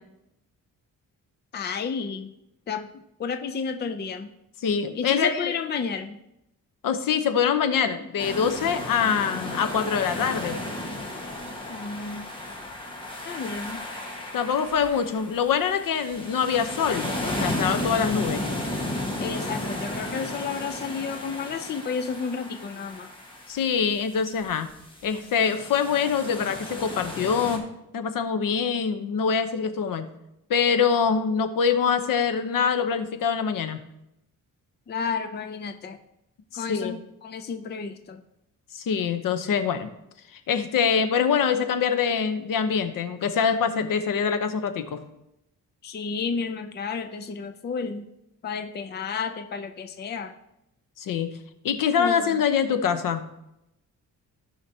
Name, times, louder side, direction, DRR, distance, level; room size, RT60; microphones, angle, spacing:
voice 1, 1.5-2.3 2.7-2.9 3.2-4.3 4.9-6.2 11.7-12.3 13.2-13.9 19.2-23.1 34.9-36.0 36.5-38.2 45.8-48.0 48.4-50.4 52.0-52.4, left 5 dB, 30° left, 7 dB, 0.5 m, -31 dB
voice 2, 4.6-5.5 6.8-10.6 14.3-18.4 23.5-24.7 25.0-27.6 27.9-30.1 30.5-33.8 36.5-37.0 38.7-39.9 40.3-45.0 51.0-51.3 51.6-53.2, left 6 dB, 70° left, 9 dB, 1.0 m, -24 dB
sound 1, 8.2-27.6, left 1 dB, 15° left, 1.6 m, -34 dB
16.5 x 5.7 x 2.9 m, 0.85 s
cardioid pair, 145°, 34 cm